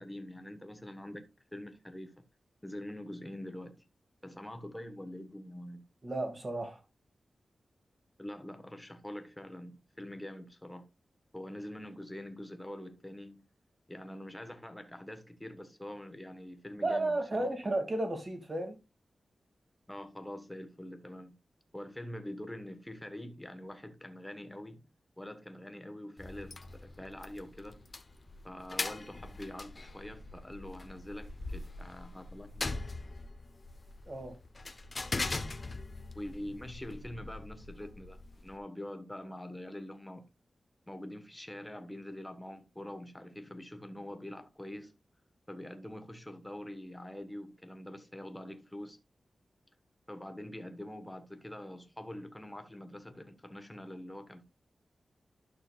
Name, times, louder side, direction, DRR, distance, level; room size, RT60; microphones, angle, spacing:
voice 1, 0.0-2.2 2.6-3.8 4.2-5.8 8.2-10.9 11.3-13.5 13.9-17.5 19.9-21.4 21.7-24.9 25.2-27.8 28.4-32.7 36.1-40.2 40.9-44.9 45.5-49.0 50.1-54.4, left 1 dB, 10° left, 1.3 m, -45 dB
voice 2, 6.0-6.8 16.8-18.8 34.1-34.4, right 2 dB, 35° right, 2.3 m, -33 dB
sound 1, 26.2-38.6, left 3 dB, 35° left, 0.9 m, -41 dB
12.0 x 6.2 x 2.4 m
wide cardioid pair, 105°, 0 cm